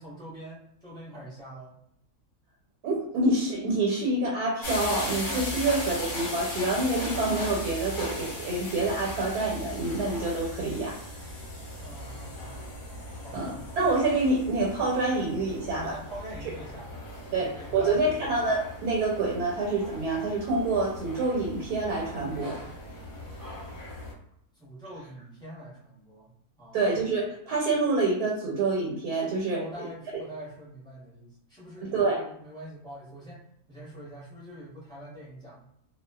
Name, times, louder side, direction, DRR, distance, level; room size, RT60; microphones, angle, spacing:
voice 1, 0.0-1.8 11.8-12.7 13.1-13.6 15.7-17.0 17.4-18.2 24.5-26.3 26.6-26.8 29.5-33.4 33.7-35.6, equal, 5° left, -9 dB, 0.8 m, -44 dB
voice 2, 2.8-11.0 13.3-16.0 17.3-22.6 26.7-29.9 31.8-32.3, right 2 dB, 90° right, -2 dB, 1.2 m, -27 dB
sound 1, 4.6-24.1, left 1 dB, 40° left, 0.8 m, -38 dB
2.4 x 2.3 x 2.2 m, 0.70 s
omnidirectional pair, 1.6 m